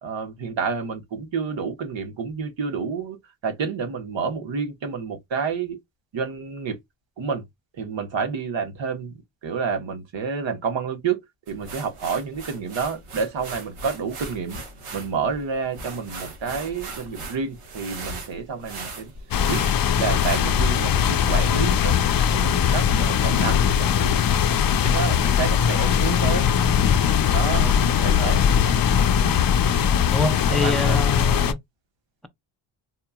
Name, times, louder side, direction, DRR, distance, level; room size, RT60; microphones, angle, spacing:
voice 1, 0.0-3.2 3.4-5.8 6.1-6.8 7.2-7.4 7.8-9.1 9.4-11.2 11.5-14.6 14.9-19.1 19.5-19.6 20.0-24.2 24.7-26.5 27.3-27.7 28.0-28.5 30.5-31.0, right 5 dB, 65° right, 1.4 m, -29 dB
sound 1, 11.5-20.6, right 3 dB, 85° right, 1.6 m, -38 dB
sound 2, 19.3-31.5, left 8 dB, 45° left, 0.5 m, -20 dB
voice 2, 30.1-31.6, left 2 dB, ahead, 0.8 m, -27 dB
4.3 x 2.8 x 2.3 m
cardioid pair, 90°, 49 cm